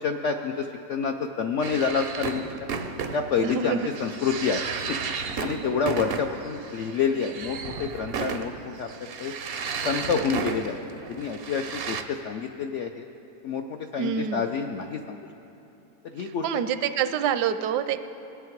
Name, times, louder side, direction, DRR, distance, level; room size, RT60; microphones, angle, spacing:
voice 1, 0.0-2.5 3.1-4.6 5.4-8.5 8.8-8.9 9.2-9.3 9.8-10.8 11.1-13.1 13.4-13.6 13.9-15.2 16.1-16.4, left 6 dB, 75° left, 4 dB, 0.6 m, -28 dB
sound 1, 1.6-12.0, right 5 dB, 65° right, 0.6 m, -34 dB
voice 2, 3.4-3.9 5.5-6.0 14.0-14.5 16.2-18.0, right 8 dB, 80° right, 11 dB, 1.2 m, -27 dB
20.5 x 8.4 x 4.6 m, 2.9 s
omnidirectional pair, 1.8 m